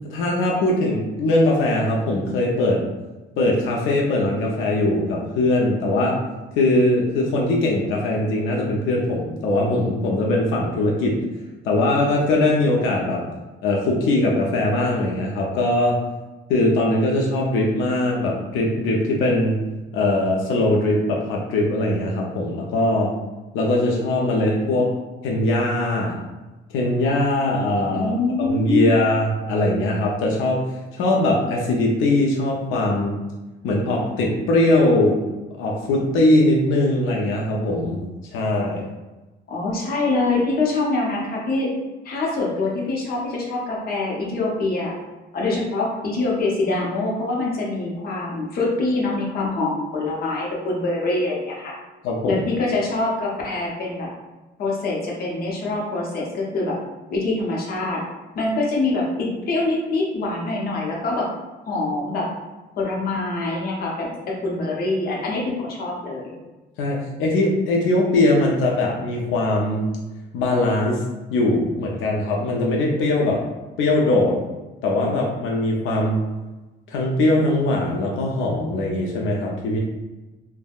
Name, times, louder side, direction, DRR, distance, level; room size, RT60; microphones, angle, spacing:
voice 1, 0.1-2.8 3.4-6.2 6.6-11.2 11.6-13.3 13.6-16.0 16.5-19.6 19.9-23.1 23.5-24.9 25.2-26.2 26.7-28.1 28.4-30.7 30.9-33.2 33.6-35.2 35.6-38.0 38.3-38.9 52.0-52.5 66.8-69.9 70.3-71.0 71.3-73.4 73.8-74.4 74.8-76.2 76.9-79.8, left 1 dB, 90° left, -2 dB, 0.5 m, -21 dB
voice 2, 27.9-28.9 39.5-41.7 42.0-44.9 45.3-51.7 52.2-54.1 54.6-56.8 57.1-58.0 58.3-61.3 61.7-62.3 62.8-66.3, left 2 dB, 50° left, -3 dB, 0.7 m, -24 dB
3.4 x 2.1 x 2.3 m, 1.1 s
cardioid pair, 150°, 20 cm